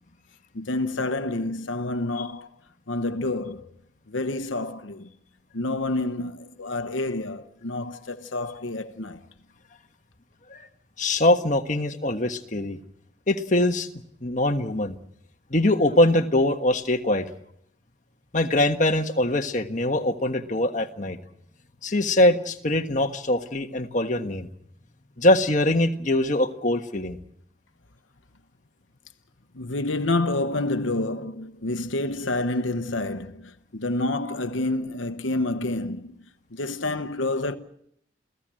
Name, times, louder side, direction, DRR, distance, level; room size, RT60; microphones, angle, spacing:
voice 1, 0.5-2.5 2.9-3.6 4.1-5.1 5.5-9.2 29.5-36.2 36.5-37.6, left 2 dB, 80° left, 1.1 m, -28 dB
voice 2, 11.0-12.8 13.3-13.9 14.2-15.0 15.5-17.3 18.3-21.2 21.8-24.5 25.2-27.2, left 1 dB, 40° left, 1.4 m, -22 dB
29.0 x 16.5 x 7.7 m
head